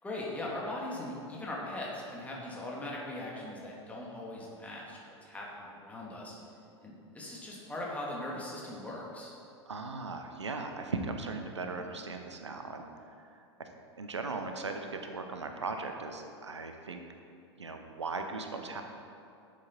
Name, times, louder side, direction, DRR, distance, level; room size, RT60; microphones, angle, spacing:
voice 1, 0.0-6.4 6.8-9.3, left 1 dB, 10° left, -4 dB, 2.1 m, -40 dB
voice 2, 9.7-13.7 14.0-17.0 17.6-18.8, right 3 dB, 75° right, 5 dB, 0.8 m, -38 dB
11.5 x 7.4 x 4.3 m, 2.5 s
figure-of-eight pair, 90°, 15 cm